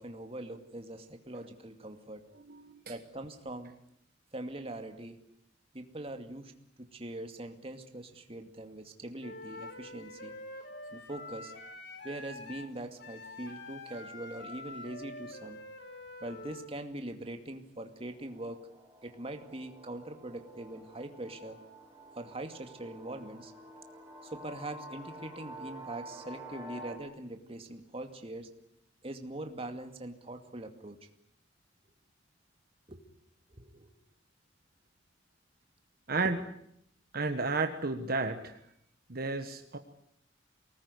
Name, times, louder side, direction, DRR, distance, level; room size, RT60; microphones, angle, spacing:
voice 1, 0.0-2.2 2.9-3.7 4.3-5.2 5.7-6.5 6.8-10.3 10.9-11.5 12.0-15.6 16.2-18.6 19.0-21.6 22.2-23.5 24.3-28.5 29.0-31.0 32.9-33.0 33.5-33.9 36.2-36.3, right 1 dB, 30° right, 6 dB, 2.3 m, -42 dB
Wind instrument woodwind instrument, 9.2-16.7, left 2 dB, 65° left, 4.0 m, -46 dB
sound 1, 18.0-27.0, right 1 dB, 10° right, 6.2 m, -49 dB
voice 2, 37.1-38.6 39.1-39.8, right 3 dB, 55° right, 6 dB, 1.5 m, -32 dB
24.0 x 19.5 x 9.9 m, 0.73 s
head